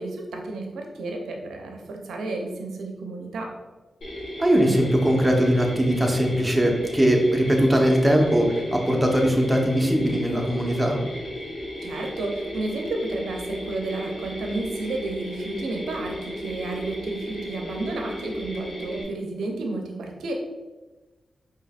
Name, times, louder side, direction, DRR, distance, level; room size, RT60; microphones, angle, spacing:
voice 1, 0.0-3.5 11.8-20.3, right 2 dB, 90° right, 2 dB, 0.6 m, -31 dB
Mechanisms, 4.0-19.0, equal, 65° left, 1.2 m, -34 dB
voice 2, 4.4-11.0, equal, 10° right, 1 dB, 0.9 m, -20 dB
4.8 x 2.9 x 2.4 m, 1.2 s
cardioid pair, 45°, 0 cm